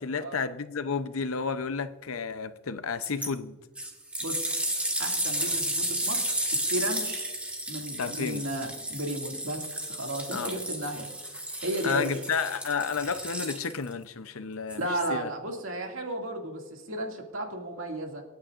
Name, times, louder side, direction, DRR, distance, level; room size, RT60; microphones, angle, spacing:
voice 1, 0.0-3.6 8.0-8.4 10.3-10.6 11.8-15.3, left 5 dB, 90° left, 0.7 m, -31 dB
sound 1, 3.0-3.3 3.7-13.9 14.7-14.8, right 1 dB, 5° right, 1.7 m, -32 dB
voice 2, 4.2-4.6 5.0-7.3 7.7-11.1 11.6-12.2 14.8-18.2, right 1 dB, 75° right, 2.3 m, -34 dB
27.0 x 9.5 x 2.5 m
head